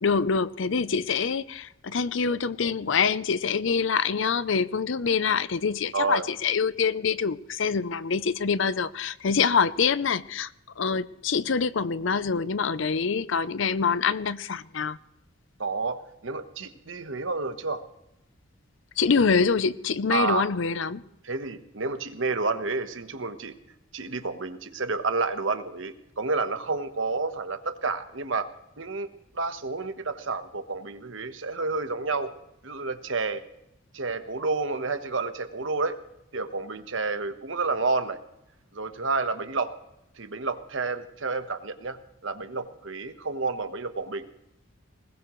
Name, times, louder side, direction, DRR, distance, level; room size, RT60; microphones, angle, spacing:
voice 1, 0.0-10.5 10.8-15.0 19.0-21.0, left 5 dB, 65° left, 0.6 m, -25 dB
voice 2, 5.9-6.3 15.6-17.8 20.1-20.5 21.2-23.5 23.9-28.5 28.8-29.1 29.3-32.3 32.6-33.4 33.9-36.0 36.3-38.2 38.7-39.7 40.2-44.3, right 3 dB, 65° right, 1.2 m, -30 dB
21.0 x 19.5 x 3.1 m
head